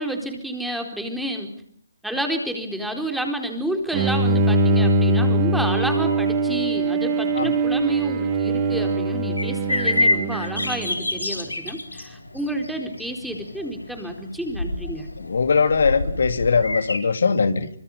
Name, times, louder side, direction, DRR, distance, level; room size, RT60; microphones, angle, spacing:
voice 1, 0.0-1.5 2.0-15.1, right 1 dB, ahead, 4 dB, 4.1 m, -30 dB
Bowed string instrument, 3.9-11.2, right 2 dB, 30° right, 4.0 m, -22 dB
sound 1, 9.4-17.0, left 2 dB, 80° left, 6.0 m, -28 dB
voice 2, 15.2-17.7, left 5 dB, 60° left, 9 dB, 2.7 m, -20 dB
28.0 x 26.0 x 5.6 m, 0.67 s
figure-of-eight pair, 140°, 0 cm